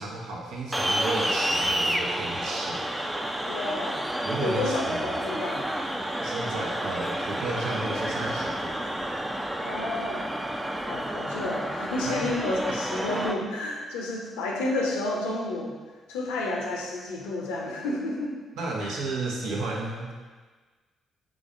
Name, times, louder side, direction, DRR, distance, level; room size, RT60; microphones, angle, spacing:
voice 1, 0.0-2.8 4.2-5.0 6.2-8.8 12.0-12.3 18.6-20.1, right 2 dB, 70° right, -2 dB, 0.8 m, -33 dB
sound 1, 0.7-13.3, right 1 dB, 10° right, 0.4 m, -30 dB
voice 2, 3.4-4.0 4.4-5.7 9.6-10.2 10.8-15.7 16.1-18.3 18.8-18.9, left 2 dB, 75° left, -1 dB, 0.6 m, -30 dB
5.0 x 3.7 x 2.5 m, 1.4 s
figure-of-eight pair, 45°, 0 cm